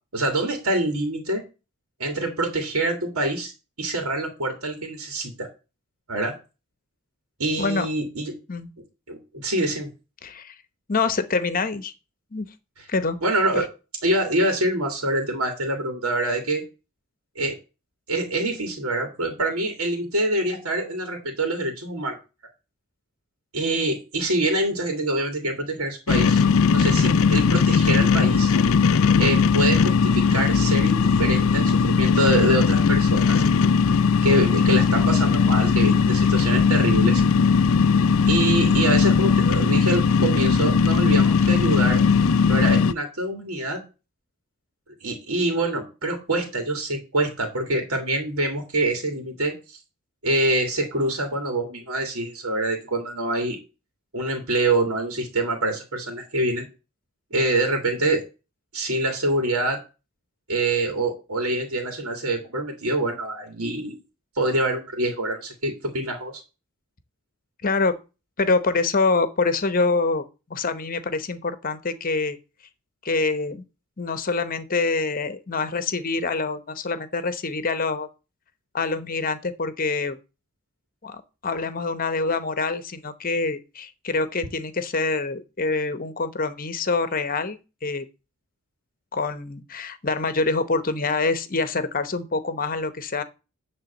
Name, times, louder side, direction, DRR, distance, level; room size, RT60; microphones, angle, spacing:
voice 1, 0.1-1.4 2.0-3.5 3.8-5.5 6.1-6.3 7.4-8.3 9.1-9.9 13.2-13.7 14.0-16.6 17.4-17.5 18.1-22.2 23.5-26.4 26.7-28.5 29.2-33.4 34.2-37.2 38.3-42.0 42.5-43.8 45.0-49.8 50.2-53.6 54.1-56.7 57.3-58.2 58.7-59.8 60.5-64.0 64.4-66.3, right 1 dB, 80° right, 2.1 m, -25 dB
voice 2, 10.2-10.5 10.9-11.9 12.3-12.5 12.9-13.2 13.5-13.7 67.6-68.0 68.4-70.2 70.5-72.4 73.0-73.6 74.0-78.1 78.7-80.2 81.0-88.0 89.1-93.2, left 3 dB, 40° left, 0.9 m, -25 dB
sound 1, 26.1-42.9, left 5 dB, 70° left, 0.5 m, -19 dB
10.0 x 3.5 x 7.1 m
head